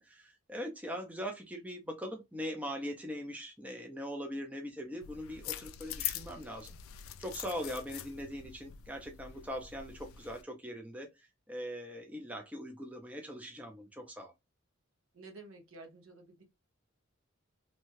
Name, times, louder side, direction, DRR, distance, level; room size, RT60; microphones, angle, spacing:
voice 1, 0.0-6.8 7.2-14.3, equal, 5° right, 0.5 m, -41 dB
sound 1, 5.0-10.4, left 11 dB, 80° left, 0.3 m, -43 dB
voice 2, 15.1-16.4, right 2 dB, 75° right, 0.9 m, -51 dB
2.7 x 2.2 x 3.0 m
head